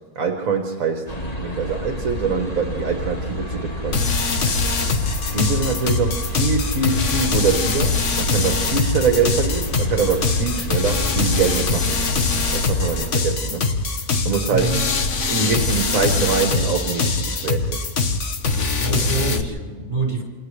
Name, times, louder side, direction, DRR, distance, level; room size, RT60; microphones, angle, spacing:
voice 1, 0.1-1.0 1.4-4.0 5.3-12.0 12.5-13.7 14.2-14.7 15.3-17.8, right 5 dB, 60° right, 3 dB, 1.7 m, -23 dB
sound 1, 1.1-13.1, left 1 dB, 25° left, 1.6 m, -30 dB
sound 2, 3.9-19.4, left 4 dB, 50° left, 1.4 m, -22 dB
voice 2, 14.5-14.8 18.7-20.2, right 3 dB, 25° right, -2 dB, 6.1 m, -25 dB
28.5 x 28.0 x 3.3 m, 1.5 s
omnidirectional pair, 1.7 m